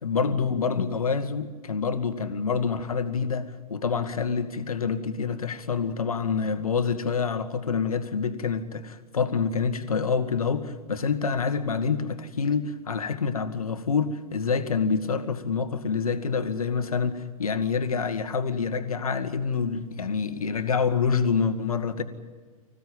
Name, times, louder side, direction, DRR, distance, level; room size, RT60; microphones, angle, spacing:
voice 1, 0.0-22.0, left 5 dB, 70° left, 9 dB, 1.8 m, -27 dB
26.0 x 16.0 x 9.0 m, 1.5 s
figure-of-eight pair, 105°, 19 cm